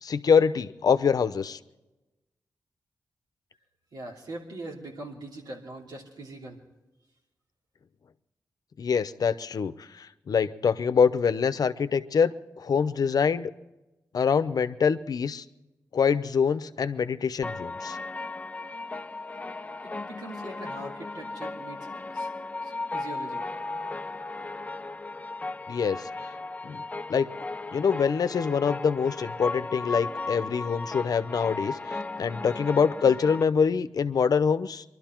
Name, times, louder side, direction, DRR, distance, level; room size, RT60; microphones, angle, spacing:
voice 1, 0.0-1.6 8.8-13.5 14.1-15.4 15.9-18.0 25.7-26.1 26.6-26.8 27.1-27.3 27.7-34.8, left 6 dB, 65° left, 12 dB, 0.7 m, -25 dB
voice 2, 3.9-6.6 19.8-22.3 22.6-23.5, right 2 dB, 90° right, -1 dB, 3.0 m, -42 dB
sound 1, 17.4-33.4, left 3 dB, 20° left, 0.4 m, -36 dB
23.0 x 12.5 x 4.5 m, 1.0 s
cardioid pair, 80°, 7 cm